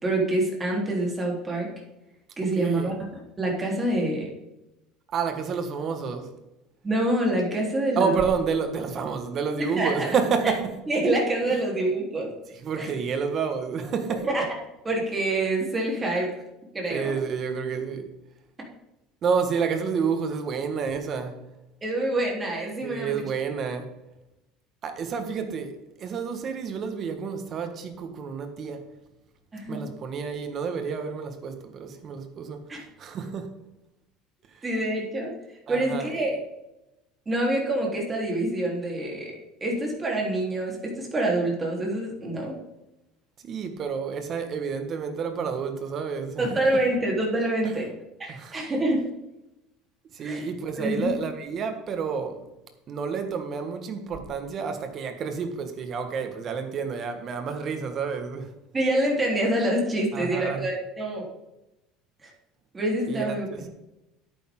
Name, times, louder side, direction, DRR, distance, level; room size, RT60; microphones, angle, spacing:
voice 1, 0.0-1.7 2.4-2.9 3.4-4.3 6.8-8.1 9.7-10.1 10.9-12.3 12.8-12.9 14.2-14.4 14.8-16.3 16.7-17.1 21.8-23.2 29.5-29.8 32.7-32.8 34.6-35.3 35.7-36.4 37.3-39.3 39.6-42.5 46.4-47.8 48.2-49.0 50.2-50.4 50.8-51.1 58.7-61.2 62.2-62.3 62.7-63.5, right 1 dB, 20° right, 4.0 m, -26 dB
voice 2, 2.6-2.9 5.1-6.3 8.0-10.8 11.5-11.6 12.5-14.2 16.9-18.1 19.2-21.4 22.8-23.9 24.8-28.9 29.7-33.5 34.5-34.6 35.7-36.3 43.4-46.8 47.6-47.8 48.3-48.6 50.1-52.5 52.9-58.5 60.1-60.7 63.1-63.7, right 5 dB, 40° right, 1.8 m, -30 dB
10.5 x 9.2 x 4.0 m
supercardioid pair, 115°, 0 cm